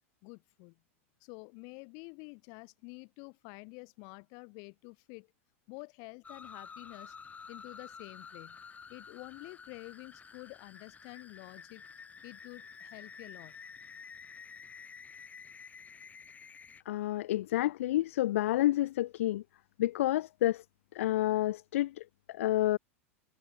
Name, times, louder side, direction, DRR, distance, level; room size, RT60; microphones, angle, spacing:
voice 1, 0.2-0.8 1.2-5.3 5.7-7.2 7.5-8.6 8.9-11.8 12.2-13.5, left 37 dB, 55° left, 3.6 m, -49 dB
sound 1, 6.2-16.8, left 6 dB, 20° left, 7.2 m, -50 dB
voice 2, 16.9-19.4 19.8-20.6 20.9-22.8, left 14 dB, 70° left, 0.3 m, -29 dB
hypercardioid pair, 100°, 8 cm